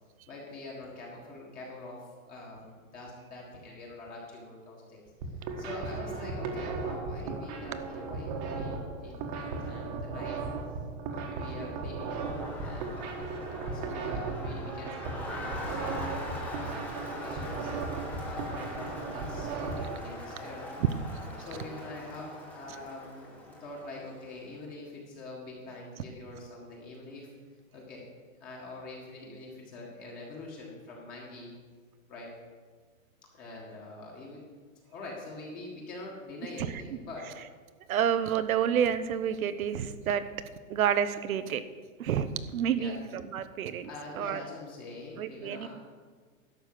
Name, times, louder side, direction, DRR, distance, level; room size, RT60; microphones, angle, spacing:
voice 1, 0.3-5.1 5.6-10.4 11.1-12.2 12.6-17.7 18.2-20.6 21.4-27.3 27.7-28.1 28.4-31.5 32.1-32.3 33.3-34.4 34.9-37.3 42.7-43.3 43.8-45.7, left 2 dB, 20° left, -2 dB, 1.7 m, -45 dB
sound 1, 5.1-19.8, right 4 dB, 30° right, 1.3 m, -36 dB
Crowd, 11.8-24.4, left 1 dB, 5° left, 1.1 m, -42 dB
voice 2, 37.9-40.2 40.7-41.6 42.0-43.9 44.2-44.4 45.2-45.7, right 8 dB, 80° right, 12 dB, 1.0 m, -29 dB
11.5 x 6.1 x 7.6 m, 1.5 s
supercardioid pair, 170°, 41 cm